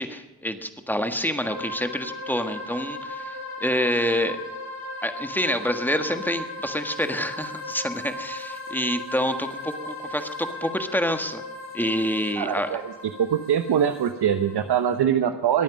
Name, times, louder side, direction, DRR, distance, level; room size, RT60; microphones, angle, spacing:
voice 1, 0.0-4.4 5.0-11.4 11.7-12.8, equal, 5° left, 7 dB, 1.5 m, -27 dB
sound 1, 1.4-15.0, left 1 dB, 65° left, 5.7 m, -37 dB
voice 2, 12.4-12.9 13.2-15.6, right 9 dB, 75° right, 9 dB, 0.9 m, -23 dB
22.0 x 9.1 x 5.2 m, 1.2 s
cardioid pair, 70°, 40 cm